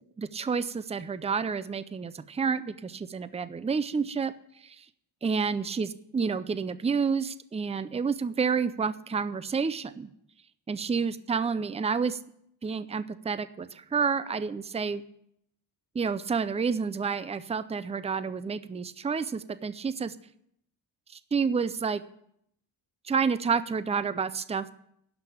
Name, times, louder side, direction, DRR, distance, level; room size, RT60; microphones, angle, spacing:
voice 1, 0.0-4.3 4.6-4.8 5.2-10.1 10.7-12.2 12.6-15.0 15.9-20.2 21.1-22.0 23.0-24.7, right 5 dB, 15° right, 13 dB, 0.4 m, -29 dB
11.5 x 5.8 x 8.3 m, 0.73 s
wide cardioid pair, 140°, 42 cm